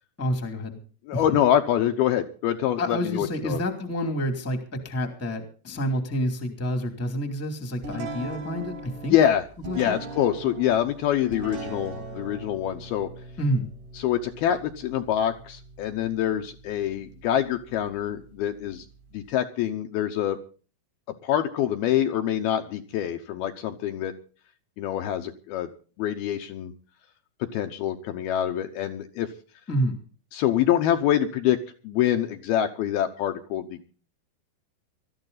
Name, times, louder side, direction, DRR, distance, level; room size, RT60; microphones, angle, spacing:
voice 1, 0.2-0.8 1.1-1.2 2.8-9.1 9.6-10.0 13.4-13.7 29.7-30.0, equal, 5° left, 5 dB, 1.5 m, -28 dB
voice 2, 1.1-3.6 9.1-9.5 9.7-13.1 14.0-18.9 19.1-20.4 21.2-24.1 24.8-25.7 26.0-26.7 27.4-29.3 30.3-31.6 31.8-33.9, left 11 dB, 75° left, 6 dB, 2.6 m, -25 dB
sound 1, 7.8-19.3, right 2 dB, 65° right, 6.4 m, -41 dB
20.0 x 13.5 x 4.0 m, 0.39 s
omnidirectional pair, 5.0 m